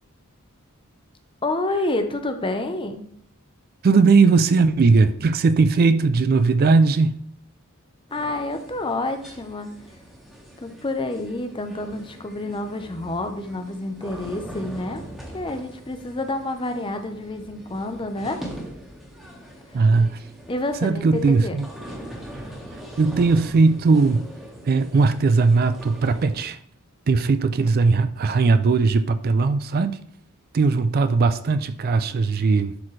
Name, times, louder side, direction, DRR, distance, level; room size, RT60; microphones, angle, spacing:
voice 1, 1.4-3.0 8.1-9.7 10.6-15.0 15.3-18.4 20.0-20.1 20.5-21.6, left 2 dB, 25° left, 0.7 m, -28 dB
voice 2, 3.8-7.2 19.7-20.2 20.8-21.7 23.0-24.3 24.7-26.6 27.1-30.0 30.5-32.7, right 4 dB, 45° right, 0.3 m, -18 dB
sound 1, 8.1-26.4, right 1 dB, ahead, 1.4 m, -42 dB
11.5 x 4.2 x 3.2 m
head